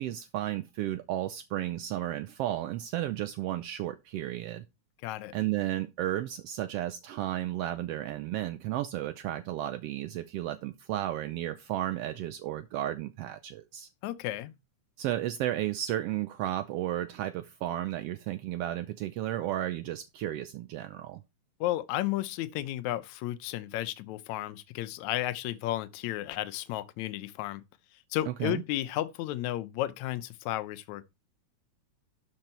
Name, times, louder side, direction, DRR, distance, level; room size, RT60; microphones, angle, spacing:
voice 1, 0.0-4.6 5.3-13.9 15.0-21.2 28.3-28.6, right 13 dB, 85° right, 1.3 m, -33 dB
voice 2, 5.0-5.3 14.0-14.5 21.6-27.6 28.1-31.0, left 14 dB, 75° left, 2.0 m, -33 dB
12.5 x 5.2 x 4.4 m
omnidirectional pair, 3.5 m